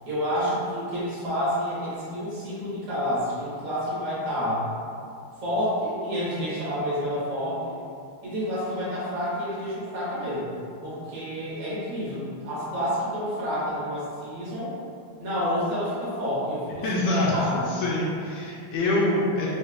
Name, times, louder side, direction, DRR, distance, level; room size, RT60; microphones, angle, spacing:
voice 1, 0.1-4.6 5.4-7.8 8.2-10.5 10.8-14.7 15.2-17.0 17.3-17.7, equal, 85° right, -9 dB, 2.2 m, -29 dB
voice 2, 16.8-17.3 17.7-19.5, left 2 dB, 75° left, -5 dB, 1.2 m, -25 dB
5.1 x 2.1 x 2.4 m, 2.4 s
omnidirectional pair, 2.4 m